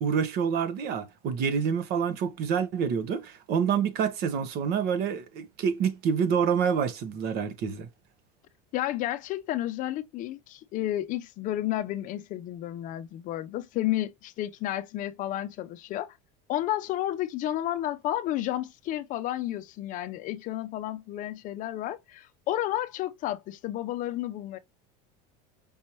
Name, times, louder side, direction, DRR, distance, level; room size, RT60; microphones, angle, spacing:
voice 1, 0.0-7.9, right 7 dB, 55° right, 1.1 m, -27 dB
voice 2, 8.7-16.2 16.5-24.6, left 13 dB, 45° left, 0.5 m, -31 dB
5.3 x 2.8 x 3.1 m
supercardioid pair, 135°, 19 cm